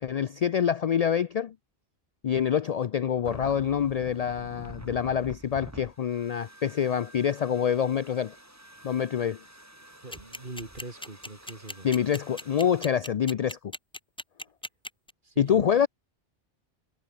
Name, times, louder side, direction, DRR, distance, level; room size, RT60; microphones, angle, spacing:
voice 1, 0.0-1.5 2.2-8.3 8.8-9.4 11.8-13.6 15.4-15.9, left 8 dB, 55° left, 0.4 m, -26 dB
sound 1, 3.2-12.8, right 1 dB, 15° right, 3.0 m, -48 dB
voice 2, 10.0-11.9 15.2-15.7, right 2 dB, 50° right, 3.0 m, -42 dB
sound 2, 10.1-15.1, left 1 dB, 5° left, 0.7 m, -37 dB
omnidirectional pair, 1.1 m